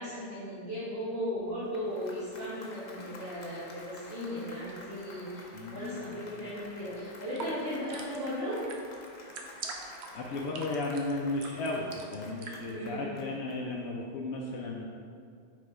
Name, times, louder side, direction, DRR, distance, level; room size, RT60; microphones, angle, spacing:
voice 1, 0.0-8.6 12.6-13.1, equal, 65° right, -12 dB, 1.8 m, -36 dB
Applause, 1.5-14.0, left 2 dB, 45° left, 0.7 m, -51 dB
voice 2, 5.5-6.1 10.1-14.9, left 2 dB, 85° left, -1 dB, 0.9 m, -34 dB
sound 1, 7.0-12.6, right 4 dB, 85° right, 1.0 m, -44 dB
4.9 x 4.4 x 4.9 m, 2.3 s
omnidirectional pair, 1.1 m